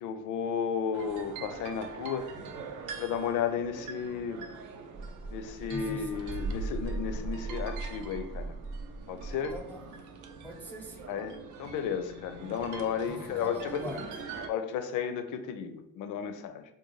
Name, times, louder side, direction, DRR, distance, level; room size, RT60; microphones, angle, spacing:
voice 1, 0.0-2.3 3.0-4.4 5.3-8.5 9.1-9.5 11.1-13.8 14.5-16.6, left 7 dB, 85° left, 8 dB, 0.5 m, -33 dB
sound 1, 0.9-14.5, right 5 dB, 80° right, 0.5 m, -44 dB
sound 2, 4.9-9.6, right 3 dB, 40° right, 0.7 m, -38 dB
voice 2, 5.7-6.3 9.5-9.9 10.4-11.1 13.1-14.1, left 1 dB, 5° left, 0 dB, 0.5 m, -42 dB
3.8 x 2.2 x 3.1 m, 0.81 s
cardioid pair, 90°, 30 cm